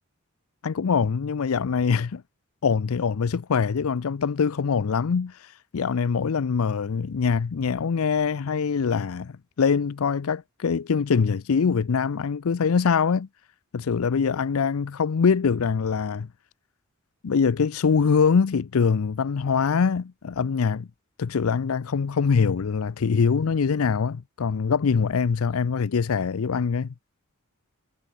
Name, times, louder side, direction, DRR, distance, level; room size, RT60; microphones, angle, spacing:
voice 1, 0.6-2.2 2.6-5.5 5.7-13.3 13.7-16.3 17.2-20.9 21.2-26.9, left 5 dB, 70° left, 0.5 m, -23 dB
head